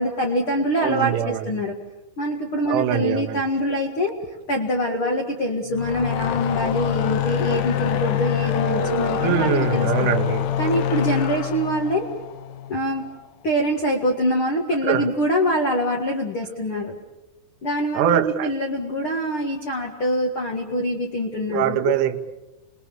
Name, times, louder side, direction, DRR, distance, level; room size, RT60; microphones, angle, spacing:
voice 1, 0.0-1.8 2.2-4.1 4.5-10.1 10.6-12.1 12.7-13.1 13.4-17.0 17.6-21.9, equal, 55° left, 1.5 m, -24 dB
voice 2, 0.8-1.5 2.7-3.4 9.2-10.5 14.8-15.1 18.0-18.5 21.5-22.2, right 10 dB, 90° right, 3.6 m, -23 dB
sound 1, 5.7-13.1, left 9 dB, 90° left, 3.9 m, -25 dB
28.0 x 21.0 x 7.1 m
omnidirectional pair, 5.4 m